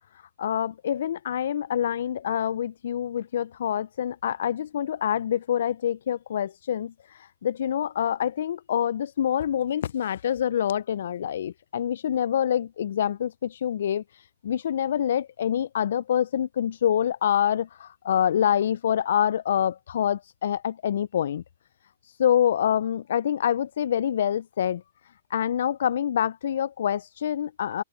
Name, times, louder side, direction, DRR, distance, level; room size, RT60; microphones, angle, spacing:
voice 1, 0.4-6.9 7.4-14.0 14.4-21.4 22.2-24.8 25.3-27.8, left 9 dB, 65° left, 0.7 m, -26 dB
hypercardioid pair, 120°, 0 cm